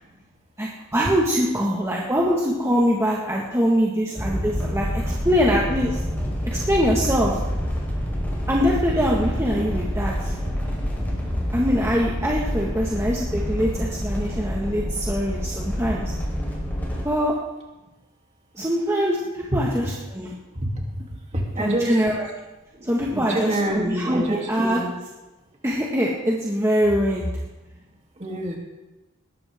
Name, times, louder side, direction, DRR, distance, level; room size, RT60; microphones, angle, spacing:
voice 1, 0.6-6.0 6.4-7.4 8.5-10.3 11.5-16.1 17.0-17.3 18.5-20.3 21.6-22.3 22.8-24.8 25.6-27.3, equal, 15° right, -3 dB, 1.7 m, -23 dB
sound 1, 4.2-17.0, equal, 10° left, 4.4 m, -27 dB
voice 2, 21.5-22.0 23.1-24.9 28.2-28.6, right 1 dB, 35° right, -1 dB, 3.0 m, -26 dB
20.0 x 13.5 x 3.7 m, 1.1 s
head